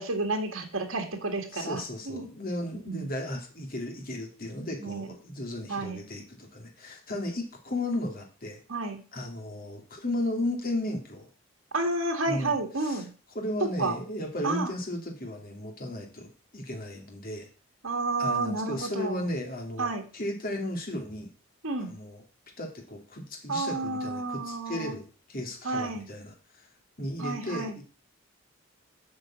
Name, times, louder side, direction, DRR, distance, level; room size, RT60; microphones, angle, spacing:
voice 1, 0.0-1.8 2.1-2.3 2.9-3.1 4.8-5.1 5.7-6.0 8.7-9.0 11.7-13.1 13.8-14.0 14.4-14.7 17.8-19.2 19.8-20.0 21.6-21.9 23.5-25.0 25.6-26.1 27.2-27.8, right 3 dB, 70° right, 4 dB, 2.0 m, -30 dB
voice 2, 1.5-8.6 9.1-11.3 12.3-13.0 13.3-17.5 18.2-21.3 21.8-22.2 22.6-26.7 27.0-27.8, left 1 dB, 45° left, 2 dB, 2.5 m, -35 dB
8.5 x 5.1 x 7.5 m, 0.38 s
head